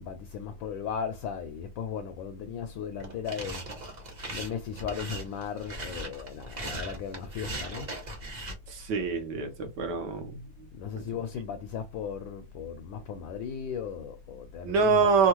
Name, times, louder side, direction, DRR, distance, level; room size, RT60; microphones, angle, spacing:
voice 1, 0.0-3.6 4.3-7.9 10.7-15.0, left 7 dB, 75° left, 1.2 m, -36 dB
sound 1, 3.0-8.5, right 2 dB, 80° right, 0.4 m, -39 dB
voice 2, 8.7-10.4 10.9-11.0 14.6-15.3, right 5 dB, 65° right, 1.2 m, -25 dB
3.5 x 2.2 x 2.9 m
omnidirectional pair, 2.4 m